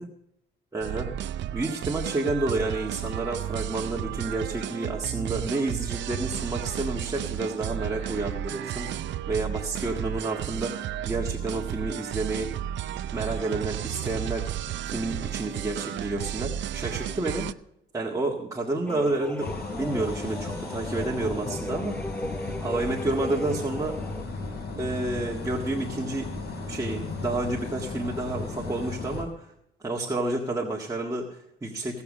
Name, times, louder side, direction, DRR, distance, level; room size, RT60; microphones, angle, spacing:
voice 1, 0.7-1.1 1.5-12.7 13.1-14.5 14.9-17.5 17.9-22.0 22.4-24.0 24.7-26.3 26.7-29.5 29.8-32.0, right 2 dB, 15° right, -2 dB, 1.8 m, -30 dB
sound 1, 0.8-17.5, right 11 dB, 65° right, 0.5 m, -33 dB
sound 2, 18.9-24.2, left 1 dB, 10° left, 0.8 m, -37 dB
sound 3, 19.4-29.2, left 3 dB, 55° left, 4.3 m, -35 dB
17.0 x 7.1 x 6.3 m, 0.80 s
cardioid pair, 90°, 20 cm